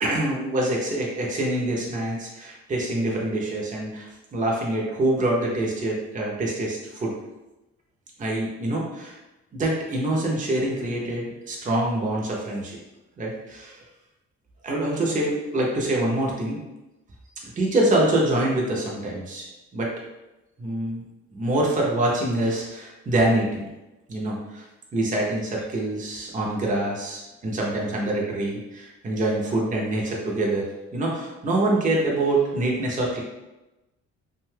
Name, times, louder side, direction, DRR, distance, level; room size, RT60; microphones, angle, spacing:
voice 1, 0.0-7.1 8.2-9.2 9.5-12.8 13.2-13.8 14.6-16.6 17.4-19.9 20.6-21.0 21.3-23.7 24.1-24.7 24.9-33.2, right 1 dB, 25° right, -2 dB, 0.6 m, -25 dB
2.6 x 2.2 x 3.2 m, 1.0 s
cardioid pair, 90°, 30 cm